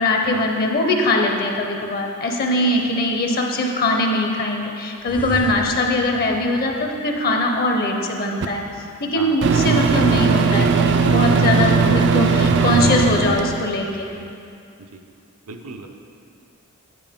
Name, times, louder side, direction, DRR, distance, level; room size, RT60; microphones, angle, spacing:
voice 1, 0.0-8.6 9.0-14.1, left 1 dB, 45° left, 2 dB, 0.7 m, -21 dB
sound 1, 5.0-7.4 12.0-14.3, left 1 dB, 5° left, 0.4 m, -33 dB
Microwave oven, 8.4-8.5 9.4-13.7, right 5 dB, 55° right, 0.4 m, -18 dB
voice 2, 9.1-9.5 14.9-15.0 15.5-15.9, right 3 dB, 85° right, 3 dB, 0.7 m, -36 dB
8.9 x 7.6 x 3.6 m, 2.5 s
head